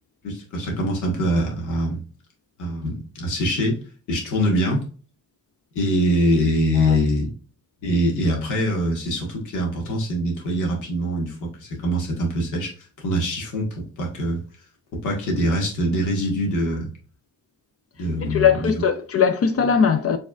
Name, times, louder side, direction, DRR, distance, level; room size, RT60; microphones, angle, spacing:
voice 1, 0.2-2.0 2.6-3.8 4.1-4.8 5.7-7.3 7.8-14.4 15.0-16.9 18.0-18.8, equal, 85° left, 1.6 m, -23 dB
voice 2, 18.2-20.2, left 7 dB, 50° left, 0.6 m, -20 dB
4.9 x 3.5 x 2.4 m
cardioid pair, 90°, 30 cm